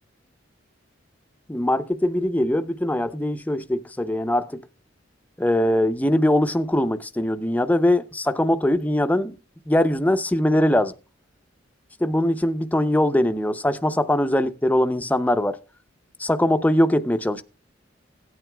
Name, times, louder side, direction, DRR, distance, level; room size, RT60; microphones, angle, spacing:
voice 1, 1.5-4.6 5.4-9.4 9.7-10.9 12.0-15.6 16.2-17.4, left 1 dB, 10° left, 0.6 m, -21 dB
17.0 x 9.1 x 2.3 m
head